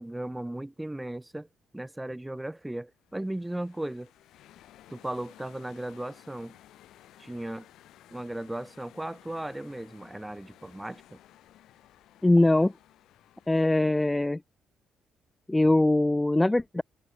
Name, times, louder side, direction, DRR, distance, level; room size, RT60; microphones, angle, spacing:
voice 1, 0.0-1.5 1.7-4.1 4.9-6.6 7.2-7.6 8.1-11.2, right 1 dB, 10° right, 1.6 m, -36 dB
sound 1, 2.9-14.3, left 13 dB, 80° left, 2.9 m, -56 dB
voice 2, 12.2-12.7 13.5-14.4 15.5-16.8, left 2 dB, 10° left, 0.4 m, -22 dB
open air
cardioid pair, 90°, 0 cm